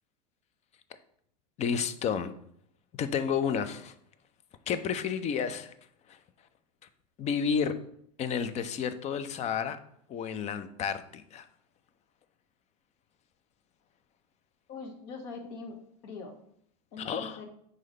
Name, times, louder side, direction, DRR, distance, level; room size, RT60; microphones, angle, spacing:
voice 1, 1.6-2.3 2.9-3.9 4.7-5.7 6.1-6.2 7.2-7.8 8.2-9.8 10.1-11.5 17.0-17.4, left 7 dB, 35° left, 12 dB, 0.6 m, -31 dB
voice 2, 14.7-16.4 16.9-17.4, left 4 dB, 55° left, 4 dB, 1.4 m, -42 dB
4.8 x 3.9 x 5.4 m, 0.69 s
hypercardioid pair, 105°, 21 cm